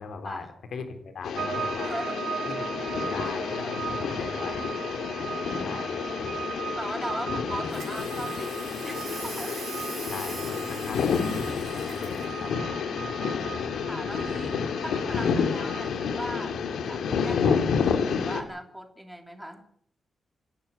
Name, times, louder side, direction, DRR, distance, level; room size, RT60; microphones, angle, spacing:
voice 1, 0.0-0.5 0.7-1.9 2.5-4.7 5.6-6.0 10.1-11.5 11.8-12.5, left 5 dB, 60° left, 7 dB, 3.7 m, -39 dB
sound 1, 1.2-18.4, left 6 dB, 85° left, 2.8 m, -29 dB
sound 2, 1.3-16.5, right 6 dB, 80° right, 3.1 m, -38 dB
voice 2, 1.8-2.2 3.9-4.0 5.4-5.8 6.8-9.6 13.2-16.6 16.8-19.6, equal, 5° right, 5 dB, 3.0 m, -39 dB
sound 3, 7.7-12.3, right 7 dB, 60° right, 2.8 m, -42 dB
27.0 x 11.5 x 8.4 m, 0.63 s
wide cardioid pair, 160°, 0 cm